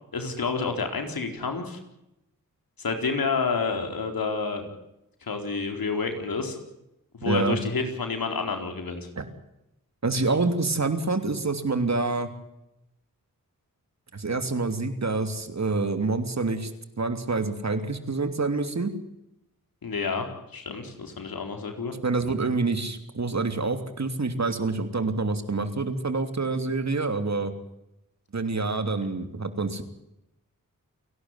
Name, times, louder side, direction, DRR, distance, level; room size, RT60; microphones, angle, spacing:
voice 1, 0.1-1.8 2.8-4.7 5.2-6.6 7.1-9.1 19.8-20.3 20.5-21.9, left 4 dB, 80° left, 5 dB, 4.4 m, -29 dB
voice 2, 7.2-7.6 9.2-9.3 10.0-12.3 14.1-16.7 17.0-18.9 22.0-27.5 28.3-29.8, right 3 dB, 50° right, 8 dB, 3.1 m, -27 dB
29.5 x 12.0 x 9.7 m, 0.86 s
cardioid pair, 45°, 35 cm